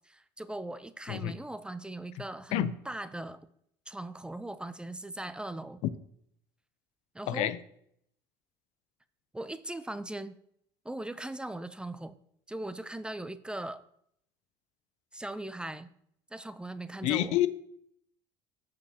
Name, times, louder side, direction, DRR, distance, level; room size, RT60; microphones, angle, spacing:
voice 1, 0.1-3.5 3.9-5.8 7.1-7.5 9.3-10.3 10.8-12.2 12.5-13.8 15.1-15.9 16.3-17.4, right 1 dB, 10° right, 13 dB, 0.5 m, -39 dB
voice 2, 7.3-7.6 17.0-17.5, left 13 dB, 65° left, 15 dB, 0.6 m, -28 dB
14.0 x 5.1 x 2.8 m, 0.71 s
supercardioid pair, 85°, 12 cm